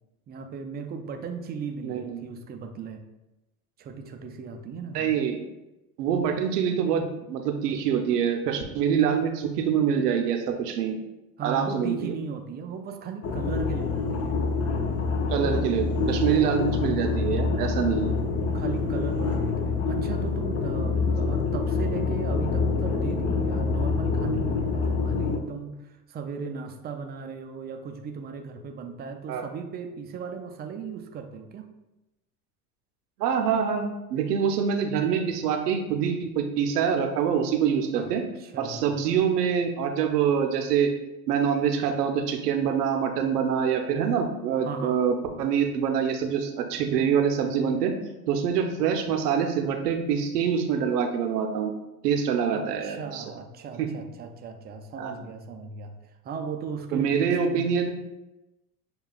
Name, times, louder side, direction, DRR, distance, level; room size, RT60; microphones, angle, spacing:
voice 1, 0.3-3.0 3.8-5.1 11.4-14.4 15.5-15.8 16.3-16.4 18.5-31.7 37.9-38.1 38.4-39.0 44.6-45.0 52.5-57.8, right 5 dB, 25° right, 6 dB, 0.4 m, -37 dB
voice 2, 1.8-2.2 4.9-5.4 6.0-11.0 11.4-12.1 15.3-18.2 29.3-29.4 33.2-38.2 38.6-40.9 41.3-47.9 48.3-51.7 52.0-53.2 53.8-53.9 55.0-55.1 56.9-57.9, right 7 dB, 85° right, 4 dB, 0.7 m, -25 dB
sound 1, 13.2-25.4, left 4 dB, 30° left, 0.6 m, -26 dB
6.7 x 2.3 x 2.3 m, 0.98 s
hypercardioid pair, 80°, 46 cm